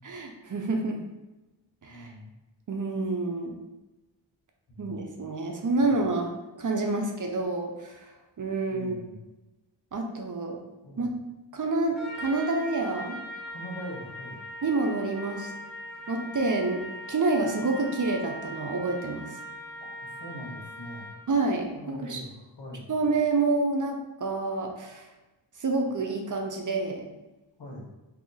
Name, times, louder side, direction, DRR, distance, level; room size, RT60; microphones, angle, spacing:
voice 1, 0.0-1.0 1.8-2.1 2.7-3.6 4.8-8.1 8.4-9.0 9.9-10.6 11.0-11.1 11.5-13.2 14.6-15.5 16.1-19.3 21.3-22.2 22.9-25.1 25.6-27.1, right 3 dB, 45° right, 2 dB, 0.5 m, -28 dB
voice 2, 1.9-2.3 4.7-5.0 5.8-6.0 8.7-9.2 10.8-11.1 13.5-14.4 20.2-21.1 21.7-22.9 27.6-27.9, equal, 65° left, -2 dB, 1.0 m, -42 dB
Trumpet, 12.0-21.3, equal, ahead, 1.0 m, -41 dB
2.7 x 2.5 x 3.8 m, 1.1 s
wide cardioid pair, 60°, 43 cm